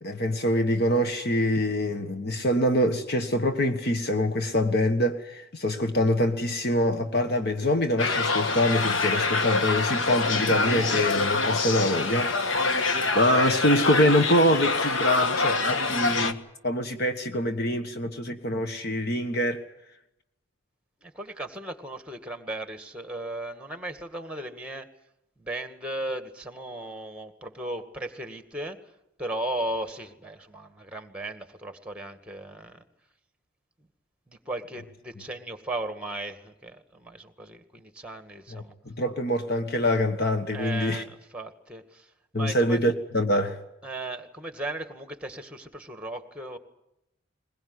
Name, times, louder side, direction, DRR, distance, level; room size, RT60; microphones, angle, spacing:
voice 1, 0.0-12.6 13.1-16.4 16.6-19.6 38.5-41.0 42.3-43.6, left 1 dB, 55° left, 1.4 m, -25 dB
sound 1, 8.0-16.3, left 3 dB, 75° left, 1.5 m, -25 dB
voice 2, 21.0-24.9 25.4-28.8 29.2-32.8 34.3-38.7 40.5-42.8 43.8-46.6, right 1 dB, 5° right, 2.0 m, -36 dB
22.0 x 21.0 x 9.7 m
head